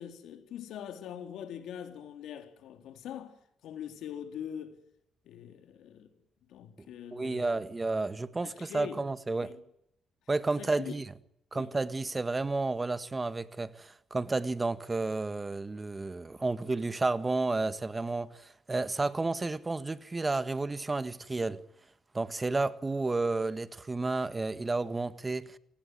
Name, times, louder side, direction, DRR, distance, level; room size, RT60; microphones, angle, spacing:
voice 1, 0.0-4.8 5.2-6.1 6.5-7.6 8.4-9.0 9.4-9.6 10.6-11.0 11.5-11.7, left 9 dB, 80° left, 3.8 m, -43 dB
voice 2, 6.8-9.5 10.3-11.0 11.5-21.6 22.1-25.6, right 3 dB, 20° right, 1.6 m, -31 dB
28.0 x 19.5 x 9.5 m
cardioid pair, 90°, 0 cm